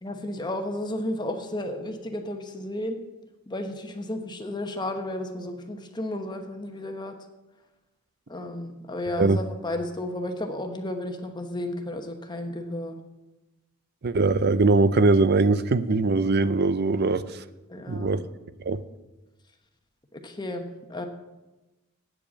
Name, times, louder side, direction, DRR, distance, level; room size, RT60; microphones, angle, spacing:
voice 1, 0.0-3.0 3.5-7.2 8.3-13.0 17.7-18.2 20.1-21.1, left 1 dB, 20° left, 1.1 m, -33 dB
voice 2, 14.0-17.2 17.9-18.2 18.6-18.8, right 3 dB, 50° right, 0.5 m, -21 dB
8.9 x 7.7 x 8.4 m
head